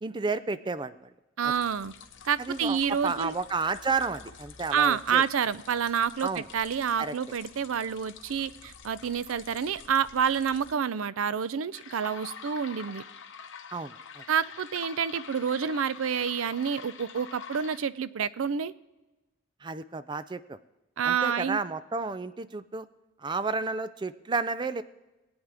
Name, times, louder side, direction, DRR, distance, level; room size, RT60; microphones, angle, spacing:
voice 1, 0.0-1.1 1.4-1.5 2.4-5.2 6.2-6.5 7.0-7.2 13.7-14.2 19.6-20.6 21.0-22.9 23.2-24.8, right 4 dB, 20° right, 0.4 m, -31 dB
sound 1, 1.4-10.7 11.7-17.8, left 6 dB, 65° left, 1.0 m, -47 dB
voice 2, 1.4-1.9 2.2-3.3 4.7-13.0 14.3-18.7 21.0-21.6, right 7 dB, 85° right, 0.5 m, -28 dB
20.5 x 8.9 x 3.4 m
head